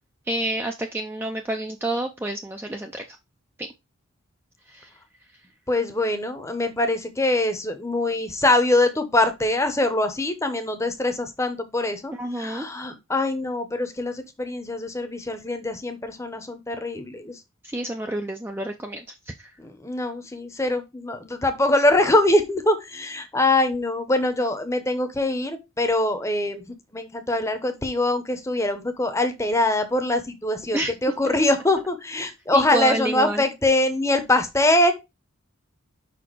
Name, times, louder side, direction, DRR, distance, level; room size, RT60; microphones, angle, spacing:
voice 1, 0.3-3.2 3.6-3.7 4.7-4.9 12.2-12.7 17.6-19.0 19.4-19.5 30.7-30.9 31.3-31.4 32.5-33.4, right 1 dB, 10° right, 4 dB, 0.4 m, -29 dB
voice 2, 5.7-17.4 19.6-26.6 26.9-34.9, left 2 dB, 15° left, 8 dB, 0.8 m, -23 dB
5.6 x 4.2 x 4.5 m, 0.24 s
head